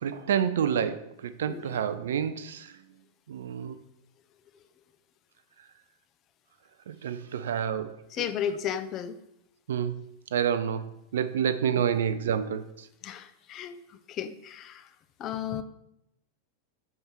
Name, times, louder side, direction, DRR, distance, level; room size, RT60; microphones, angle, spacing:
voice 1, 0.0-2.7 3.3-3.8 6.9-7.9 9.7-10.0 10.3-10.8 11.1-12.7, right 8 dB, 60° right, 13 dB, 0.4 m, -28 dB
voice 2, 1.5-1.8 8.1-9.2 11.8-11.9 13.0-13.8 14.1-14.9 15.2-15.6, left 9 dB, 35° left, 11 dB, 0.4 m, -34 dB
6.4 x 3.5 x 4.5 m, 0.82 s
figure-of-eight pair, 90°, 0 cm